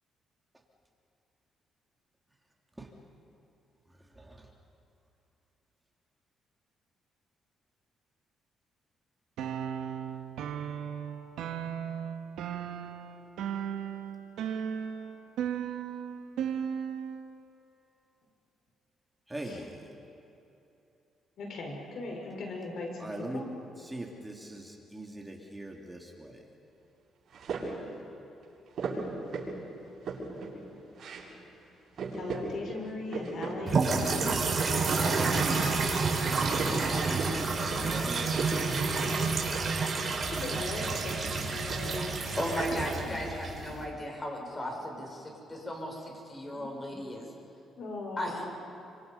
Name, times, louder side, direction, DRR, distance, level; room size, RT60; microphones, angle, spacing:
voice 1, 4.1-4.5 19.3-19.9 23.0-23.4 23.8-26.5 36.0-38.4, right 1 dB, 15° right, 0 dB, 2.7 m, -42 dB
sound 1, 9.4-17.2, right 8 dB, 85° right, 1.8 m, -36 dB
voice 2, 21.4-23.5 32.1-34.4 34.8-35.6 38.8-39.4 40.3-42.2 42.7-42.8 43.1-43.2 46.5-47.0 47.8-48.5, left 2 dB, 65° left, 1 dB, 5.6 m, -39 dB
sound 2, 27.3-27.9 28.8-29.6 29.9-30.6 31.0-31.3 31.6-31.7 32.0-32.5 32.8-33.5 33.9-34.8 35.1-35.8 36.2-37.4 37.7-38.0 38.3-38.6 38.9-39.1 39.4-40.2 40.9-42.0 42.3-42.7, right 4 dB, 60° right, 7.8 m, -37 dB
sound 3, 33.7-43.8, right 4 dB, 35° right, 4.9 m, -29 dB
voice 3, 42.4-47.3 48.2-48.4, equal, 25° left, 1 dB, 6.5 m, -36 dB
29.5 x 26.0 x 5.5 m, 2.9 s
cardioid pair, 90°, 0 cm